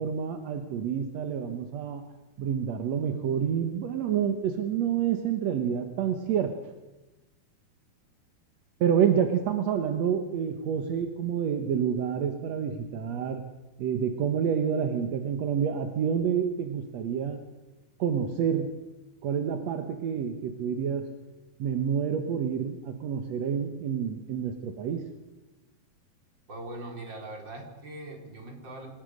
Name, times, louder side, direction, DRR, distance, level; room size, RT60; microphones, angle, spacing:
voice 1, 0.0-2.0 2.4-6.6 8.8-13.4 13.8-17.5 18.0-18.8 19.2-21.2 21.6-25.1, right 8 dB, 65° right, 6 dB, 1.9 m, -28 dB
voice 2, 26.5-28.9, right 2 dB, 30° right, 1 dB, 4.7 m, -41 dB
27.0 x 18.0 x 6.5 m, 1.1 s
omnidirectional pair, 4.4 m